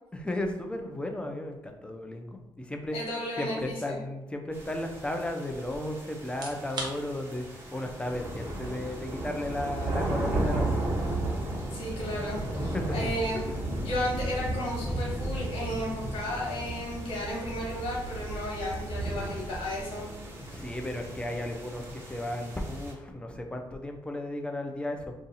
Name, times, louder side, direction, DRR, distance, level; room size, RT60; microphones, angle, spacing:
voice 1, 0.1-3.0 3.4-7.4 7.7-10.8 12.7-13.1 13.3-13.7 20.4-25.1, left 1 dB, 10° left, 4 dB, 0.5 m, -34 dB
voice 2, 2.9-4.0 11.7-13.4 13.8-20.1, left 1 dB, 80° left, -4 dB, 1.3 m, -34 dB
sound 1, 4.5-22.9, right 1 dB, 25° right, 1.1 m, -34 dB
sound 2, 6.2-21.1, right 2 dB, 55° right, 0.8 m, -50 dB
2.6 x 2.4 x 4.0 m, 0.99 s
cardioid pair, 75°, 9 cm